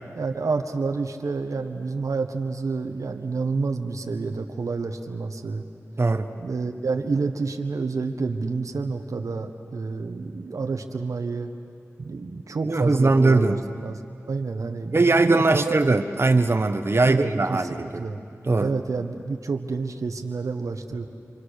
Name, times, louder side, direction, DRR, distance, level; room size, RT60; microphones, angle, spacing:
voice 1, 0.1-5.6 6.4-11.5 12.0-13.9 14.3-15.8 17.1-18.2 18.6-21.1, right 4 dB, 85° right, 5 dB, 1.3 m, -29 dB
voice 2, 12.6-13.6 14.9-18.0 18.5-18.7, right 3 dB, 50° right, 6 dB, 1.1 m, -20 dB
27.0 x 27.0 x 6.6 m, 2.4 s
cardioid pair, 45°, 5 cm